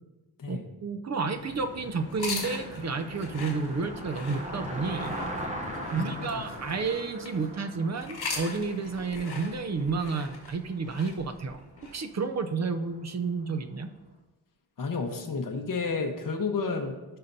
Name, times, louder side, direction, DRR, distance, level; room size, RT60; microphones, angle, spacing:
voice 1, 0.5-5.2 5.9-11.6 11.9-13.9, right 4 dB, 45° right, 8 dB, 0.6 m, -31 dB
sound 1, 1.3-6.9, left 2 dB, 40° left, 0.9 m, -46 dB
Car passing by, 1.4-13.7, right 1 dB, 20° right, 0.9 m, -41 dB
sound 2, 2.1-7.5 8.0-12.0, left 4 dB, 70° left, 1.8 m, -40 dB
voice 2, 5.9-6.4 14.8-17.2, left 4 dB, 55° left, 3 dB, 1.1 m, -31 dB
16.0 x 5.6 x 2.7 m, 1.1 s
wide cardioid pair, 165°, 40 cm